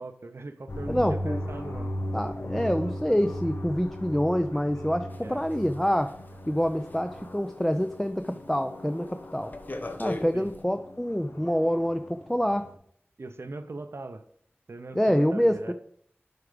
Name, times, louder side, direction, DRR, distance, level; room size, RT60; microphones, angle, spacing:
voice 1, 0.0-1.9 2.5-2.7 5.2-5.4 10.3-10.5 13.2-14.2 14.7-15.7, right 3 dB, 75° right, 10 dB, 0.7 m, -40 dB
sound 1, 0.7-12.7, equal, 85° left, 1.1 m, -38 dB
voice 2, 0.9-1.4 2.1-6.1 6.5-9.5 10.0-12.7 14.9-15.7, equal, 5° left, 7 dB, 0.5 m, -26 dB
sound 2, 5.1-7.9 8.2-8.6 8.9-10.6, left 2 dB, 45° left, 0.9 m, -40 dB
8.1 x 4.9 x 5.0 m, 0.65 s
wide cardioid pair, 50°, 4 cm